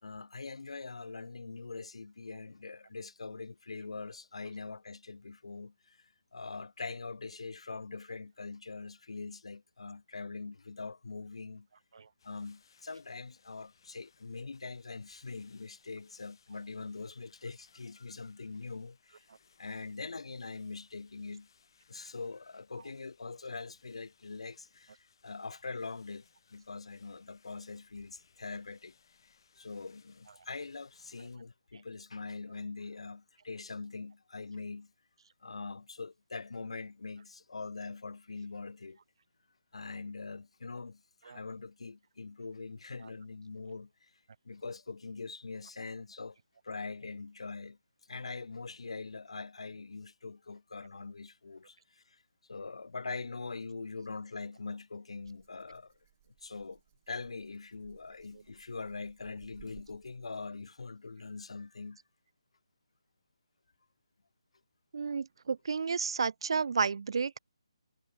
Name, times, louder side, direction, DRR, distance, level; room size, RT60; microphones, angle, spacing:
voice 1, 0.0-11.7 12.2-19.2 19.6-21.5 21.9-28.9 29.6-34.9 35.4-39.0 39.7-44.1 44.4-46.4 46.6-47.8 48.1-52.2 52.5-55.9 56.4-56.8 57.1-62.0, left 4 dB, 75° left, 2.2 m, -43 dB
sound 1, 12.2-31.4, left 6 dB, 50° left, 6.0 m, -68 dB
Rattle (instrument), 55.2-60.6, right 17 dB, 20° right, 3.1 m, -62 dB
voice 2, 64.9-67.4, right 5 dB, 55° right, 0.3 m, -31 dB
hypercardioid pair, 165°, 3 cm